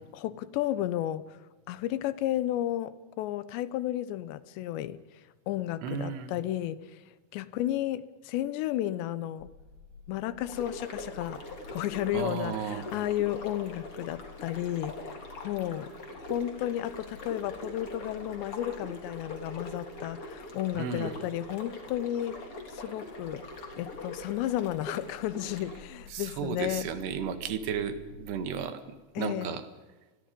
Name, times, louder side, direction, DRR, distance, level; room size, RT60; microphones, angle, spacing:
voice 1, 0.0-1.4 1.7-5.0 5.5-7.0 7.3-9.5 10.1-11.4 11.7-15.9 16.2-22.4 22.7-26.9 29.2-29.6, left 13 dB, 75° left, 15 dB, 2.9 m, -33 dB
voice 2, 5.8-6.4 12.1-12.9 20.8-21.2 26.1-29.7, right 7 dB, 65° right, 9 dB, 3.5 m, -34 dB
sound 1, 9.4-28.5, left 4 dB, 60° left, 4.4 m, -52 dB
sound 2, 10.5-25.8, left 2 dB, 30° left, 3.7 m, -43 dB
30.0 x 22.0 x 5.3 m, 1.2 s
omnidirectional pair, 5.5 m